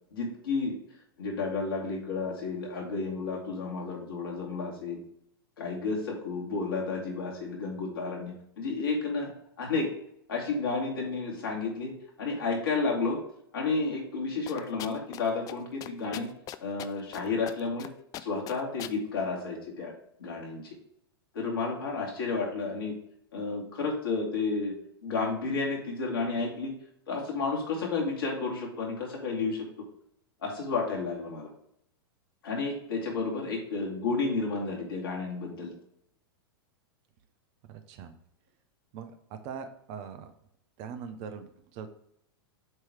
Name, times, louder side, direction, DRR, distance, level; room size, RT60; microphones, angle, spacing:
voice 1, 0.1-0.8 1.2-5.0 5.6-9.3 9.6-9.9 10.3-11.9 12.2-13.2 13.5-16.3 16.6-17.9 18.2-19.9 20.2-20.6 21.3-23.0 23.3-24.7 25.0-26.7 27.1-29.6 30.4-31.5 32.4-35.7, left 4 dB, 70° left, -2 dB, 2.4 m, -31 dB
sound 1, 14.5-15.2 15.5-15.6 15.8-17.2 17.5-17.9 18.1-19.0, left 13 dB, 30° left, 0.4 m, -40 dB
voice 2, 37.7-38.1 38.9-40.3 40.8-41.9, right 6 dB, 45° right, 9 dB, 0.8 m, -41 dB
7.6 x 3.2 x 4.8 m, 0.73 s
figure-of-eight pair, 100°, 12 cm